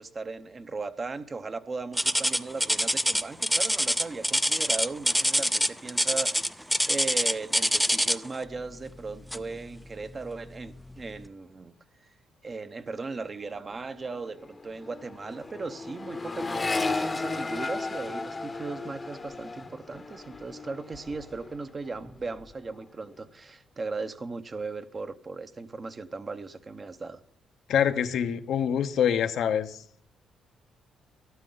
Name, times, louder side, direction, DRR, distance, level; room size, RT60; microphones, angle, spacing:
voice 1, 0.0-11.7 12.4-27.2, right 3 dB, 35° right, 10 dB, 0.9 m, -37 dB
sound 1, 2.0-8.4 9.3-9.6 10.1-10.2 10.9-11.0, equal, ahead, 0.5 m, -25 dB
Accelerating revving vroom, 13.6-13.8 14.1-21.6 21.9-22.5, left 3 dB, 25° left, 0.9 m, -34 dB
voice 2, 27.7-29.8, left 8 dB, 75° left, 9 dB, 0.8 m, -25 dB
12.5 x 12.0 x 3.9 m, 0.65 s
cardioid pair, 90°, 0 cm